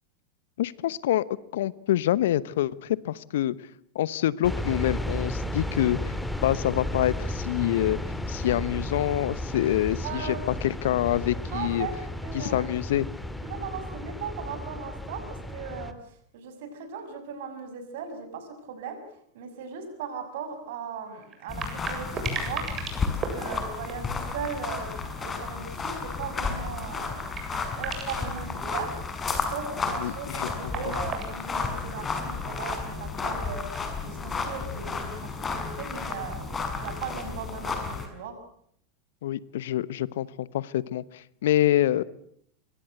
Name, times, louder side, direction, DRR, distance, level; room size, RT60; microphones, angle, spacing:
voice 1, 0.6-1.2 1.5-3.6 3.9-6.1 6.4-8.0 8.3-11.9 12.3-13.1 30.0-30.5 30.8-30.9 39.2-42.0, left 13 dB, 65° left, 20 dB, 1.0 m, -26 dB
sound 1, 4.4-15.9, left 1 dB, 5° left, 2.6 m, -33 dB
voice 2, 10.0-10.5 11.5-12.0 12.2-12.8 13.4-16.0 16.3-19.0 19.3-22.7 23.3-27.2 27.8-28.9 29.5-33.7 34.0-38.3, right 6 dB, 60° right, 8 dB, 6.6 m, -38 dB
sound 2, 19.6-19.7 20.0-20.1 21.2-24.7 25.1-25.5 25.8-25.9 26.8-26.9 27.2-28.4 29.9-32.0 33.1-33.9, right 5 dB, 30° right, 7.9 m, -37 dB
sound 3, 21.5-38.1, left 4 dB, 20° left, 6.2 m, -32 dB
26.5 x 23.0 x 8.0 m, 0.67 s
figure-of-eight pair, 90°, 0 cm